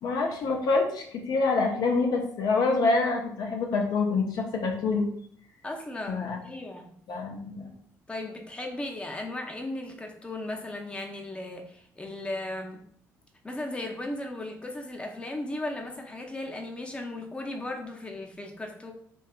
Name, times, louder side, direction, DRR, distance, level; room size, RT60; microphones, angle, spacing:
voice 1, 0.0-5.1 6.1-6.4 7.1-7.7, left 3 dB, 65° left, 2 dB, 0.5 m, -26 dB
voice 2, 5.6-6.9 8.1-12.8 13.4-18.9, left 1 dB, 15° left, 2 dB, 0.5 m, -36 dB
2.7 x 2.3 x 2.3 m, 0.63 s
supercardioid pair, 60°, 7 cm